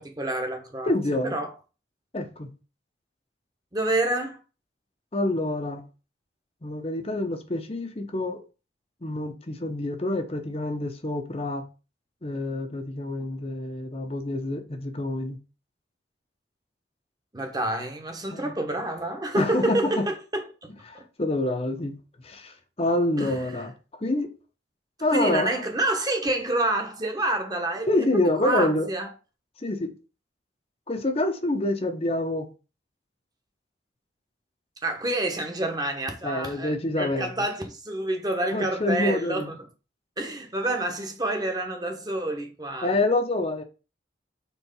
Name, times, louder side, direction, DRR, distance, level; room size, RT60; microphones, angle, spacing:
voice 1, 0.0-0.9 1.2-1.5 3.7-4.4 17.3-21.0 23.2-23.6 25.1-27.9 28.4-29.1 34.8-39.5 40.2-42.9, right 1 dB, 20° right, 1.1 m, -28 dB
voice 2, 0.8-1.4 2.1-2.5 5.1-5.8 6.6-8.4 9.0-11.6 12.2-15.4 18.3-18.5 19.3-20.0 20.9-22.0 22.2-23.7 24.0-24.3 25.0-25.6 27.9-28.9 29.6-29.9 30.9-32.5 36.2-37.3 38.5-39.5 42.8-43.6, left 2 dB, 35° left, 0.8 m, -27 dB
4.5 x 4.1 x 5.4 m
head